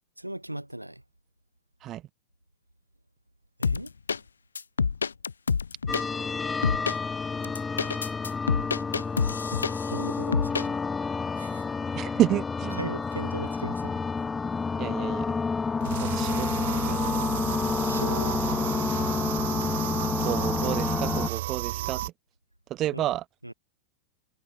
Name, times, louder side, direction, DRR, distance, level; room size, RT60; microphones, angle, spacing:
voice 1, 0.2-1.0 3.6-3.9 9.9-10.8 11.4-11.7 12.7-14.0 17.8-18.4 22.9-23.1 23.4-23.5, right 1 dB, 85° right, 5.9 m, -37 dB
sound 1, 3.6-4.2 4.6-6.0 6.6-7.0 7.4-10.0 10.3-10.7, left 5 dB, 75° left, 1.1 m, -27 dB
sound 2, 5.9-21.3, left 4 dB, 15° left, 3.8 m, -29 dB
voice 2, 11.9-12.9 14.8-15.4 16.0-16.5 16.9-17.2 20.2-22.0 22.7-23.2, right 13 dB, 35° right, 3.6 m, -30 dB
sound 3, 15.8-22.1, right 16 dB, 55° right, 7.0 m, -33 dB
figure-of-eight pair, 90°, 0 cm